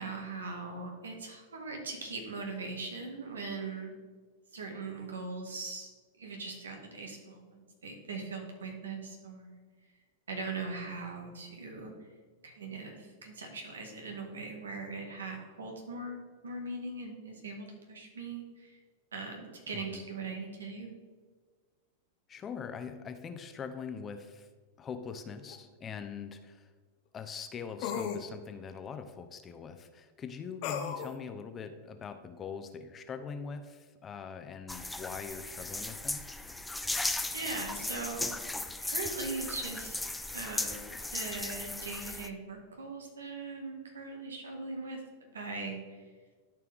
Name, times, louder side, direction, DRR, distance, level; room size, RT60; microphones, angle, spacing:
voice 1, 0.0-3.9 4.5-5.9 6.2-9.6 10.3-11.9 12.4-18.8 19.1-20.9 37.3-38.3 38.9-40.0 40.3-46.0, right 3 dB, 90° right, 2 dB, 1.8 m, -40 dB
voice 2, 19.7-20.0 22.3-24.5 24.8-26.7 27.1-36.2, left 6 dB, 25° left, 8 dB, 0.8 m, -42 dB
sound 1, 25.5-25.6 27.8-28.2 30.6-31.1, left 7 dB, 55° left, 1.0 m, -35 dB
sound 2, 34.7-42.3, left 2 dB, 5° left, 0.5 m, -37 dB
13.0 x 4.6 x 3.6 m, 1.5 s
hypercardioid pair, 105°, 0 cm